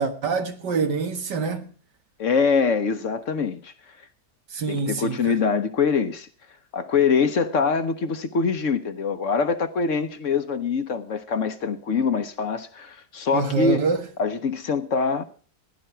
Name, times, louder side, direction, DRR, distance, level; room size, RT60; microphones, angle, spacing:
voice 1, 0.0-1.7 4.5-5.4 13.3-14.0, right 5 dB, 90° right, 2.2 m, -25 dB
voice 2, 2.2-3.7 4.7-6.3 6.7-13.8 14.2-15.2, left 5 dB, 55° left, 1.0 m, -24 dB
16.0 x 10.5 x 4.4 m
omnidirectional pair, 1.8 m